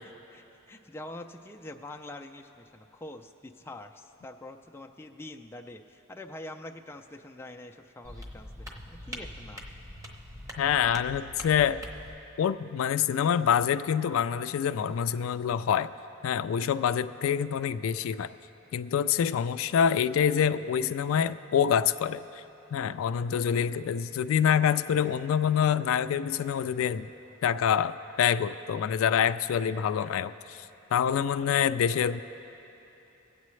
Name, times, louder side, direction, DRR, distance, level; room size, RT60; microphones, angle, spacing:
voice 1, 0.0-9.7, left 1 dB, 10° left, 3 dB, 0.4 m, -45 dB
sound 1, 8.0-12.2, equal, 15° right, 0.9 m, -43 dB
voice 2, 10.6-11.8 12.4-15.9 16.2-18.3 18.7-22.4 22.7-27.1 27.4-30.7 30.9-32.2, left 8 dB, 85° left, 12 dB, 0.3 m, -26 dB
22.0 x 8.3 x 3.2 m, 3.0 s
head